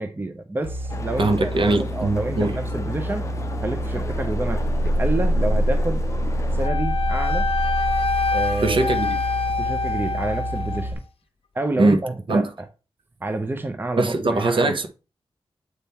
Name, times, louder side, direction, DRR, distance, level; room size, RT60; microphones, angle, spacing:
voice 1, 0.0-3.3 3.6-6.0 6.5-7.5 8.3-8.9 9.6-11.0 11.5-12.5 13.2-14.7, right 2 dB, 20° right, 0.7 m, -28 dB
sound 1, 0.6-10.9, equal, 90° right, 1.6 m, -26 dB
sound 2, 0.9-6.7, left 3 dB, 30° left, 0.5 m, -36 dB
voice 2, 1.2-2.5 8.6-9.2 11.8-12.0 12.3-12.5 14.0-14.9, right 2 dB, 60° right, 1.0 m, -21 dB
Wind instrument woodwind instrument, 6.6-10.9, left 4 dB, 80° left, 0.7 m, -26 dB
8.1 x 3.7 x 4.3 m
wide cardioid pair, 135°, 10 cm